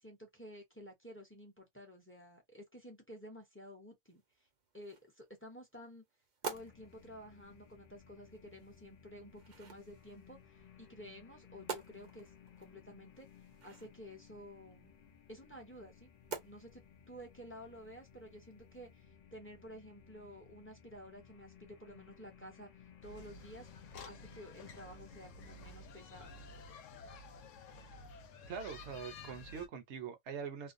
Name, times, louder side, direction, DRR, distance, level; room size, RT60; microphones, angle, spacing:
voice 1, 0.0-4.2 4.7-6.0 6.5-12.3 12.6-13.3 13.6-14.9 15.3-16.1 16.4-22.7 23.0-23.7 24.0-26.3, equal, 15° left, 0.6 m, -52 dB
sound 1, 4.0-19.0, right 5 dB, 50° right, 0.6 m, -51 dB
sound 2, 6.5-26.5, left 7 dB, 60° left, 0.4 m, -60 dB
sound 3, 23.0-29.7, left 3 dB, 85° left, 1.0 m, -52 dB
voice 2, 28.5-30.7, right 6 dB, 70° right, 0.9 m, -43 dB
2.5 x 2.1 x 2.5 m
omnidirectional pair, 1.3 m